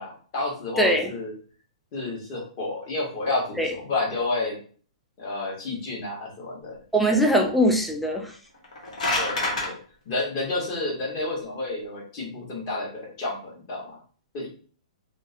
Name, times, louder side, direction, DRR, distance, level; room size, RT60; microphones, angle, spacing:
voice 1, 0.0-1.3 1.9-4.6 5.2-6.8 9.2-9.8 10.1-14.0 14.3-14.5, left 2 dB, 35° left, -2 dB, 1.0 m, -30 dB
voice 2, 0.8-1.1 3.6-3.7 6.9-8.3, equal, ahead, 1 dB, 0.3 m, -21 dB
sound 1, 8.5-9.7, left 2 dB, 85° left, 0.9 m, -26 dB
2.4 x 2.0 x 2.5 m, 0.43 s
hypercardioid pair, 155°, 4 cm